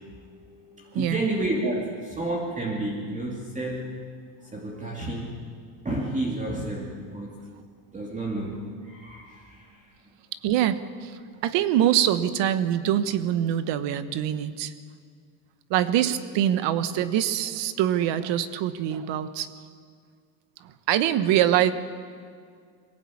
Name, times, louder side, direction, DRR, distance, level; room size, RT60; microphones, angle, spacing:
voice 1, 0.0-3.9 4.4-5.4 5.8-7.4 7.9-9.9, right 1 dB, 15° right, -1 dB, 2.4 m, -31 dB
voice 2, 10.4-14.7 15.7-19.5 20.6-21.7, right 11 dB, 70° right, 12 dB, 1.4 m, -24 dB
22.0 x 17.5 x 8.7 m, 2.1 s
cardioid pair, 135°, 45 cm